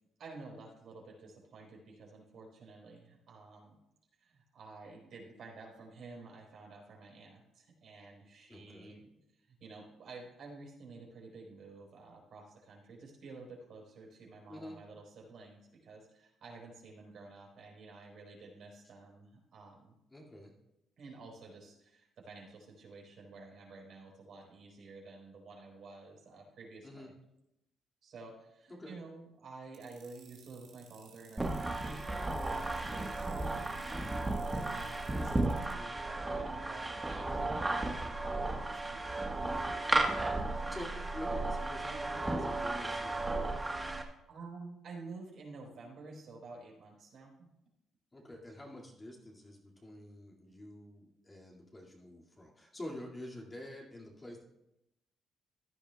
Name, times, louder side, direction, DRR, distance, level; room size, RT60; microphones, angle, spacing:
voice 1, 0.2-3.8 4.2-9.1 9.4-19.9 21.0-27.1 28.0-40.5 44.3-47.5, right 3 dB, 65° right, -2 dB, 4.0 m, -51 dB
voice 2, 8.5-9.0 14.5-14.8 20.1-20.5 26.8-27.1 28.7-29.0 35.7-35.9 39.2-39.3 40.3-43.6 48.1-54.4, left 1 dB, 20° left, -1 dB, 2.2 m, -48 dB
sound 1, 29.7-35.7, right 8 dB, 85° right, 2.1 m, -59 dB
sound 2, 31.4-44.0, right 2 dB, 15° right, 1.3 m, -34 dB
15.5 x 10.5 x 2.3 m, 0.88 s
cardioid pair, 85°, 0 cm